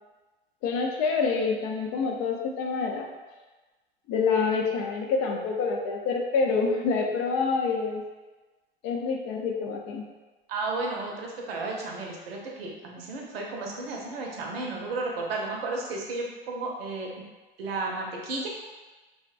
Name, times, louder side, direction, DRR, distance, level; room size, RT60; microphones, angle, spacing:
voice 1, 0.6-3.1 4.1-8.0 8.8-10.1, left 4 dB, 50° left, 1 dB, 0.5 m, -27 dB
voice 2, 10.5-17.1 17.6-18.5, right 3 dB, 80° right, -1 dB, 0.6 m, -33 dB
2.6 x 2.1 x 2.4 m, 1.2 s
hypercardioid pair, 90°, 29 cm